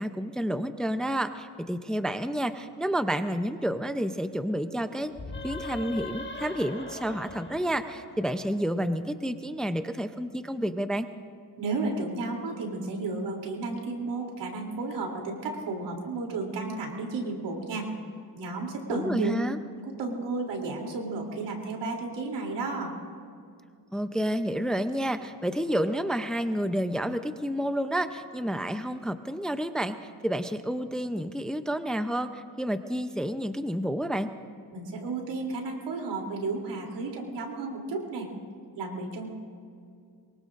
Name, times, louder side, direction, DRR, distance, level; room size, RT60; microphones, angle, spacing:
voice 1, 0.0-5.1 5.4-11.1 18.9-19.6 23.9-34.3, equal, ahead, 9 dB, 0.5 m, -30 dB
sound 1, 5.1-8.7, left 3 dB, 25° left, 1.5 m, -40 dB
voice 2, 11.6-17.9 18.4-19.4 19.8-22.9 34.7-38.3 38.8-39.3, right 3 dB, 85° right, 1 dB, 3.2 m, -33 dB
23.5 x 23.0 x 2.5 m, 2.3 s
cardioid pair, 115°, 42 cm